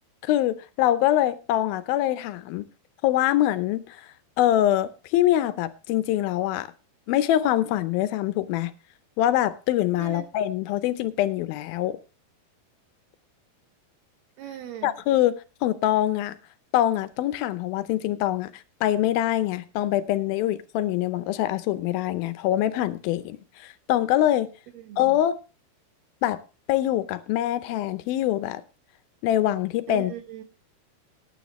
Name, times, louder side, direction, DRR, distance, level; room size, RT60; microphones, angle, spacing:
voice 1, 0.2-2.7 3.0-3.8 4.4-6.7 7.1-8.7 9.2-12.0 14.8-16.4 16.7-18.5 18.8-23.4 23.6-24.5 25.0-25.4 26.2-26.4 26.7-28.6 29.2-30.1, left 13 dB, 80° left, 2.2 m, -24 dB
voice 2, 14.4-14.9 24.8-25.2 29.9-30.4, right 11 dB, 75° right, 3.4 m, -39 dB
19.0 x 9.4 x 3.0 m
omnidirectional pair, 4.8 m